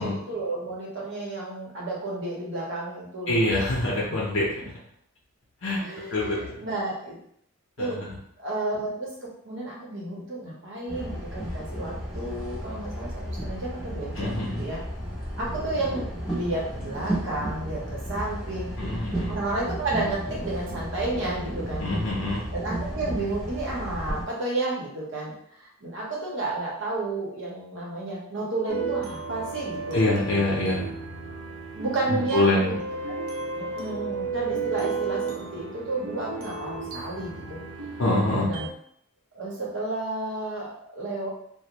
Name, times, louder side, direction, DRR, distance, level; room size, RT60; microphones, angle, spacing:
voice 1, 0.0-3.4 5.8-7.2 7.8-8.0 8.4-9.1 9.4-14.8 15.4-16.0 16.3-18.7 19.3-21.9 22.5-30.0 31.7-33.2 33.6-38.0 38.4-38.6 39.3-41.3, right 2 dB, 60° right, -4 dB, 0.8 m, -32 dB
voice 2, 3.3-4.5 5.6-5.8 6.1-6.4 7.8-8.1 14.2-14.6 18.8-19.4 21.8-22.5 29.9-30.9 32.1-32.7 38.0-38.5, left 2 dB, 60° left, -5 dB, 0.6 m, -25 dB
sound 1, 10.9-24.2, equal, ahead, 0.6 m, -33 dB
sound 2, 28.7-38.7, right 4 dB, 85° right, 0.4 m, -33 dB
2.5 x 2.0 x 2.9 m, 0.69 s
head